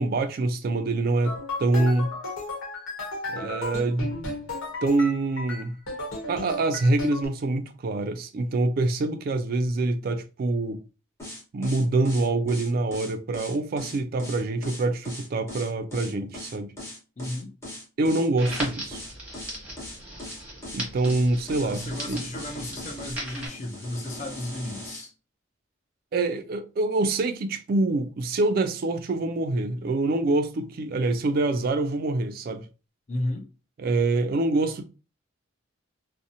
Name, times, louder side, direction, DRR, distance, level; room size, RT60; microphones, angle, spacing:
voice 1, 0.0-2.1 3.3-4.2 4.8-5.7 6.3-10.8 11.5-16.7 18.0-19.0 20.7-22.2 26.1-32.7 33.8-34.8, right 2 dB, 45° right, 0.3 m, -25 dB
sound 1, 1.2-7.3, left 2 dB, 85° left, 1.0 m, -34 dB
sound 2, 11.2-25.1, left 1 dB, 15° left, 1.0 m, -39 dB
voice 2, 17.2-17.5 21.6-25.1 33.1-33.5, left 1 dB, 35° left, 0.5 m, -34 dB
Crackle, 18.4-23.5, right 1 dB, 5° right, 0.9 m, -38 dB
2.7 x 2.0 x 2.6 m
head